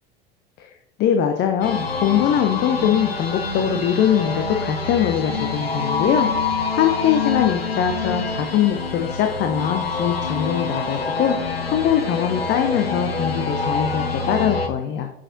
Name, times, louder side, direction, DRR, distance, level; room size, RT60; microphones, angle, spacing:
voice 1, 1.0-6.3 6.7-11.4 11.7-15.1, left 9 dB, 35° left, 5 dB, 0.7 m, -22 dB
sound 1, 1.6-14.7, left 4 dB, 85° left, 0.8 m, -26 dB
7.5 x 5.1 x 3.9 m, 0.78 s
figure-of-eight pair, 70°, 29 cm